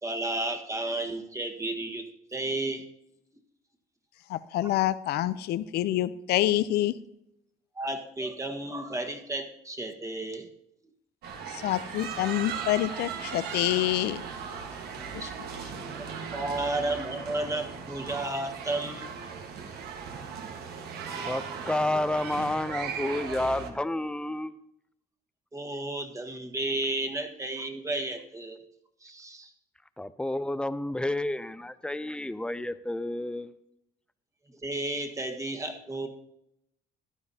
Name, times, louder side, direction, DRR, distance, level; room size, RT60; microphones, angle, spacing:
voice 1, 0.0-2.0 2.3-2.8 4.6-4.8 7.7-10.5 15.2-15.3 16.3-19.2 25.5-28.6 29.0-29.5 34.6-36.1, right 2 dB, 20° right, 5 dB, 1.5 m, -32 dB
voice 2, 4.3-6.9 11.5-14.2, left 14 dB, 75° left, 16 dB, 0.5 m, -27 dB
sound 1, 11.2-23.7, right 6 dB, 70° right, 1.5 m, -38 dB
voice 3, 21.3-24.5 30.0-33.5, left 1 dB, 5° left, 13 dB, 0.5 m, -30 dB
14.5 x 11.0 x 2.8 m, 0.80 s
cardioid pair, 110°, 17 cm